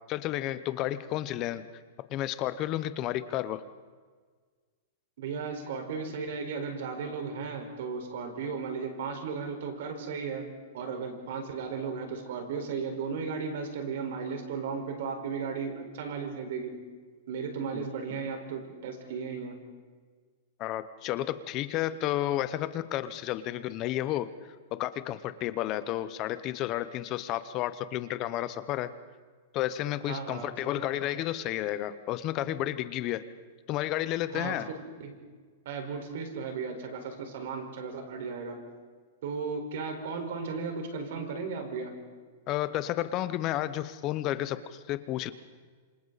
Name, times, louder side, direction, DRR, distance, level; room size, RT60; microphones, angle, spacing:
voice 1, 0.1-1.6 2.1-3.6 17.7-17.9 20.6-24.3 24.7-28.9 29.5-33.2 33.7-34.7 42.5-45.3, left 13 dB, 30° left, 13 dB, 0.9 m, -31 dB
voice 2, 5.2-10.5 10.7-16.8 17.3-19.6 30.1-30.9 34.3-34.6 35.0-35.2 35.6-38.6 39.2-42.0, right 5 dB, 65° right, 4 dB, 4.8 m, -35 dB
27.5 x 26.5 x 4.2 m, 1.5 s
supercardioid pair, 165°, 0 cm